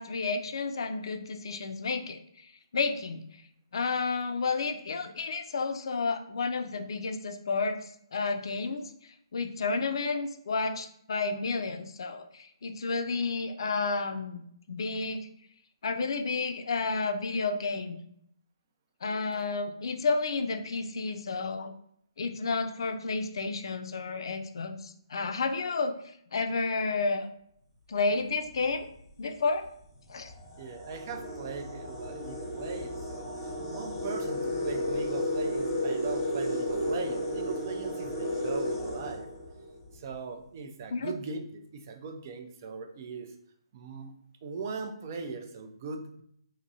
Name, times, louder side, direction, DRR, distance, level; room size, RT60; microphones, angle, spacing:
voice 1, 0.0-2.2 2.7-3.2 3.7-8.9 9.3-14.4 14.7-15.3 15.8-18.0 19.0-21.7 22.2-25.9 26.3-27.3 27.9-28.9 29.2-29.7 30.1-30.3 40.9-41.1, left 4 dB, 60° left, 6 dB, 0.4 m, -31 dB
sound 1, 28.5-28.8 29.6-29.7 30.1-39.9, equal, 20° left, 0.7 m, -33 dB
voice 2, 30.6-39.3 39.9-43.3 43.7-44.1 44.4-46.2, right 5 dB, 35° right, 6 dB, 0.4 m, -40 dB
2.9 x 2.6 x 2.6 m, 0.70 s
hypercardioid pair, 155°, 3 cm